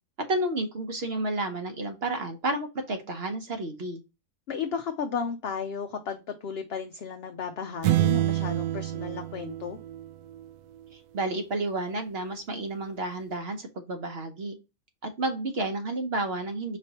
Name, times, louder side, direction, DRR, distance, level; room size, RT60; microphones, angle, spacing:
voice 1, 0.2-4.0 10.9-14.6 15.0-16.8, right 2 dB, 55° right, 6 dB, 0.9 m, -31 dB
voice 2, 4.5-9.8, left 6 dB, 65° left, 6 dB, 0.7 m, -34 dB
sound 1, 7.8-10.5, right 13 dB, 80° right, 1.0 m, -27 dB
5.1 x 3.3 x 2.8 m, 0.26 s
omnidirectional pair, 1.4 m